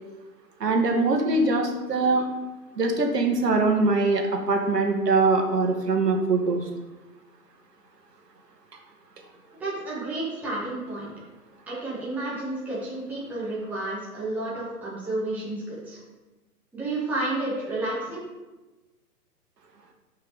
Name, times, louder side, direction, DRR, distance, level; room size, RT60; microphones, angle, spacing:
voice 1, 0.6-2.3 2.8-6.7, right 3 dB, 80° right, 2 dB, 2.1 m, -22 dB
voice 2, 9.6-11.1 11.7-16.0 16.7-18.2, right 2 dB, 5° right, -9 dB, 1.8 m, -31 dB
6.2 x 5.5 x 6.9 m, 1.1 s
hypercardioid pair, 160°, 48 cm